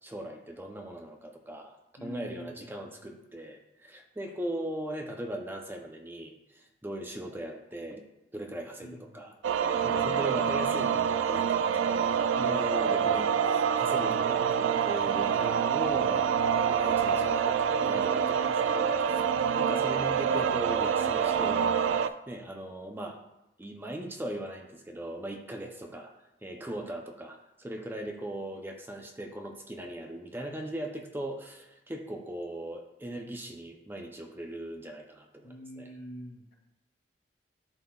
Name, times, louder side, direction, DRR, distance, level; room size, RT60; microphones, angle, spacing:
voice 1, 0.0-1.8 2.0-8.0 8.3-9.3 9.8-12.0 12.4-18.9 19.6-21.7 22.0-23.2 23.6-26.1 26.4-35.9, right 1 dB, 10° right, 3 dB, 0.5 m, -39 dB
voice 2, 2.0-3.2 8.8-9.4 13.1-13.6 18.3-19.5 35.4-36.5, equal, 65° left, -2 dB, 2.3 m, -48 dB
sound 1, 9.4-22.1, right 7 dB, 90° right, 0.3 m, -26 dB
11.5 x 4.0 x 2.3 m, 0.90 s
head